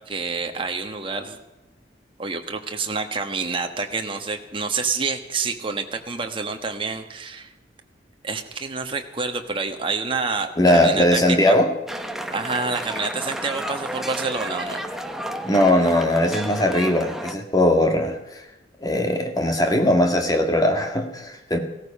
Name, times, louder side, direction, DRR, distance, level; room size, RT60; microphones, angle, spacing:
voice 1, 0.1-1.4 2.2-7.5 8.2-11.6 12.3-14.8, right 4 dB, 30° right, 5 dB, 1.4 m, -28 dB
voice 2, 10.6-11.7 15.4-18.2 18.8-21.6, left 1 dB, 20° left, 4 dB, 1.8 m, -19 dB
sound 1, 11.9-17.3, right 1 dB, ahead, 0.9 m, -32 dB
16.5 x 13.5 x 5.5 m, 1.0 s
head